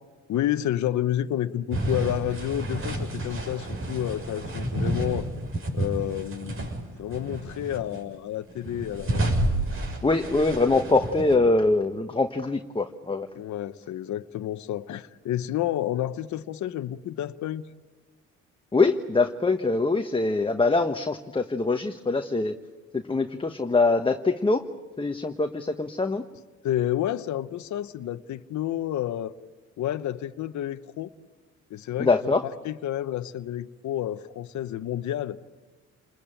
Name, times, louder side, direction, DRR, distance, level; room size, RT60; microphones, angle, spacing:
voice 1, 0.3-5.3 5.7-6.7 7.0-9.2 13.4-17.6 26.6-29.4 29.8-31.1 31.7-32.1 32.4-35.4, left 12 dB, 70° left, 11 dB, 0.9 m, -30 dB
sound 1, 1.7-6.8 7.1-8.0 8.5-11.3, right 1 dB, 45° right, 6.5 m, -30 dB
voice 2, 10.0-13.3 18.7-22.5 22.9-24.6 25.0-26.2 32.0-32.4, left 3 dB, 15° left, 6 dB, 1.2 m, -23 dB
29.5 x 21.0 x 8.9 m, 1.3 s
cardioid pair, 90°, 30 cm